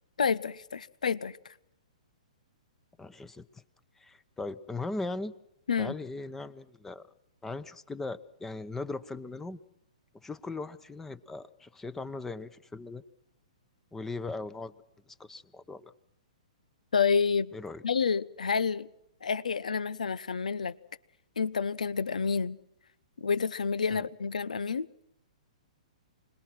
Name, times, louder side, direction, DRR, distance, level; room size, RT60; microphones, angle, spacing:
voice 1, 0.2-1.4 5.7-5.9 16.9-17.5 17.8-18.9 19.2-20.7 21.4-22.6 23.2-24.9, left 5 dB, 85° left, 0.7 m, -29 dB
voice 2, 3.0-3.5 4.0-5.3 5.8-7.0 7.4-9.6 10.2-13.0 13.9-14.7 15.2-15.9 17.5-17.8 23.9-24.0, left 3 dB, 10° left, 1.0 m, -38 dB
26.0 x 20.0 x 6.0 m
hypercardioid pair, 130°, 4 cm